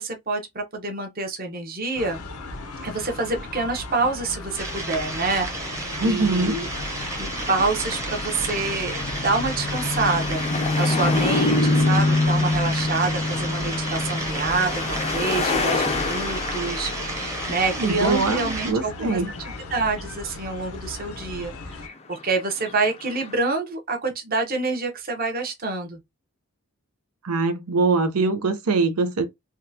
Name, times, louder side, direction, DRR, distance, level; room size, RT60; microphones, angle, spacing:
voice 1, 0.0-2.2 2.8-6.7 7.2-21.5 22.1-26.0, right 3 dB, 40° right, 0.9 m, -27 dB
sound 1, 1.9-21.9, left 2 dB, 85° left, 0.8 m, -37 dB
sound 2, 4.6-18.7, right 2 dB, 15° right, 0.8 m, -33 dB
sound 3, 5.6-18.5 19.0-19.7 20.0-20.1 21.7-22.1 22.7-23.3, left 2 dB, 30° left, 0.5 m, -26 dB
voice 2, 6.0-6.6 17.8-19.3 27.2-29.3, right 3 dB, 90° right, 0.6 m, -23 dB
3.6 x 2.3 x 2.7 m
head